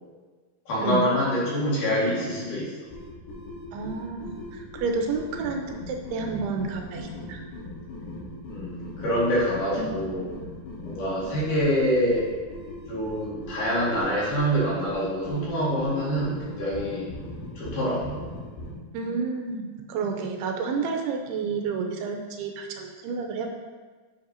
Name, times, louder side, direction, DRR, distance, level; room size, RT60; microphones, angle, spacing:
voice 1, 0.7-2.7 8.5-10.3 10.8-12.3 12.9-17.1 17.6-18.2, equal, 55° left, -8 dB, 3.3 m, -25 dB
sound 1, 2.8-18.7, left 1 dB, 80° left, 3.4 m, -40 dB
voice 2, 3.7-7.4 9.8-9.9 18.9-23.5, right 4 dB, 85° right, 2 dB, 2.6 m, -30 dB
9.4 x 7.2 x 2.8 m, 1.4 s
omnidirectional pair, 4.8 m